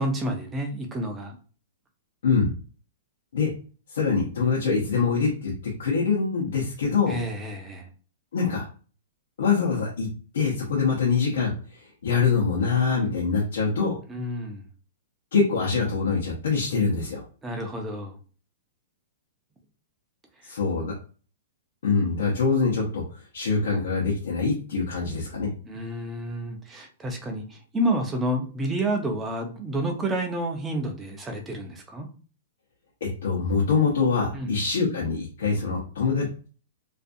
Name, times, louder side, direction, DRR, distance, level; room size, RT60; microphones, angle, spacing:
voice 1, 0.0-1.4 7.1-7.9 14.1-14.6 17.4-18.2 20.4-20.5 25.6-32.1 34.3-34.5, right 1 dB, 10° right, 3 dB, 0.4 m, -29 dB
voice 2, 3.9-5.5 5.8-7.2 8.3-8.7 9.4-10.1 10.3-14.0 15.3-17.2 20.4-20.9 21.8-23.0 23.3-25.5 33.0-36.5, left 5 dB, 80° left, -3 dB, 0.7 m, -24 dB
2.4 x 2.3 x 2.5 m, 0.39 s
hypercardioid pair, 170°, 0 cm